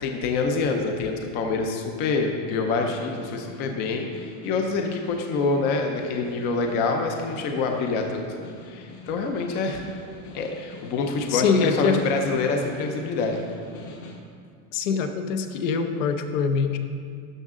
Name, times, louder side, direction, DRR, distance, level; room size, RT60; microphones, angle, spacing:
voice 1, 0.0-9.8 10.3-13.5, left 3 dB, 25° left, 3 dB, 0.5 m, -26 dB
Snare drum, 2.6-14.3, left 3 dB, 45° left, 1.3 m, -45 dB
voice 2, 11.3-12.0 14.7-16.8, left 5 dB, 70° left, 7 dB, 0.9 m, -23 dB
12.0 x 6.4 x 3.7 m, 2.2 s
supercardioid pair, 170°, 40 cm